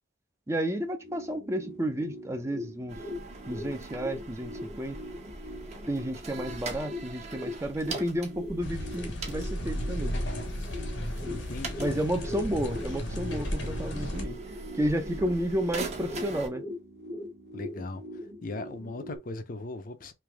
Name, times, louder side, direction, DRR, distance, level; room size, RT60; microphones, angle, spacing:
voice 1, 0.5-3.0 3.5-5.0 5.9-10.2 11.8-14.4 14.7-16.6, right 1 dB, 15° right, 0.5 m, -31 dB
sound 1, 0.8-19.2, left 1 dB, 60° right, 1.0 m, -42 dB
sound 2, 2.9-16.5, right 2 dB, 35° right, 0.9 m, -41 dB
sound 3, 8.6-14.2, left 1 dB, 90° left, 1.5 m, -35 dB
voice 2, 11.3-12.0 17.5-18.0 18.4-20.1, left 2 dB, 50° left, 0.6 m, -38 dB
3.3 x 3.0 x 3.4 m
head